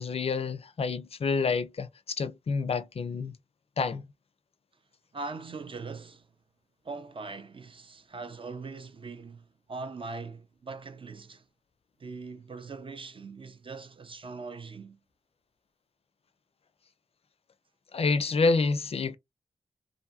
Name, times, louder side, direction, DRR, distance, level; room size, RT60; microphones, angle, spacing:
voice 1, 0.0-3.4 3.8-4.1 17.9-19.1, left 4 dB, 45° left, 0.4 m, -28 dB
voice 2, 5.1-6.3 6.8-11.4 12.0-15.0, right 4 dB, 40° right, 0.4 m, -41 dB
2.7 x 2.5 x 2.3 m
wide cardioid pair, 90°, 14 cm